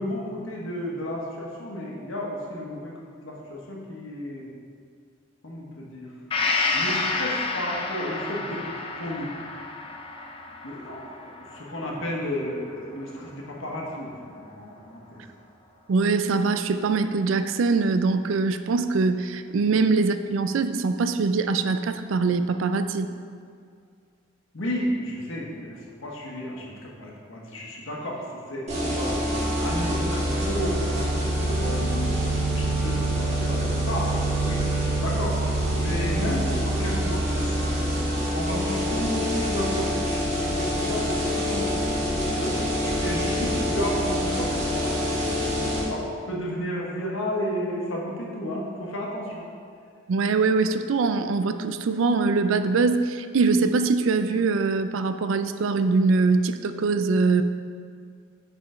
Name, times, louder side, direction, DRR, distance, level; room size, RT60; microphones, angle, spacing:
voice 1, 0.0-2.9 3.2-4.5 5.4-6.1 6.7-8.6 9.0-9.3 10.6-15.2 24.5-29.2 29.6-31.1 31.4-32.2 32.5-34.1 34.4-35.4 35.8-37.5 38.3-41.7 42.4-44.9 45.9-49.4, equal, 80° left, -2 dB, 1.2 m, -32 dB
Gong, 6.3-13.9 14.3-14.4, left 3 dB, 25° left, 0.4 m, -31 dB
voice 2, 15.9-23.2 50.1-57.4, right 4 dB, 75° right, 10 dB, 0.4 m, -23 dB
sound 1, 28.7-45.8, right 1 dB, 35° right, 1.4 m, -26 dB
5.5 x 4.9 x 5.0 m, 2.2 s
head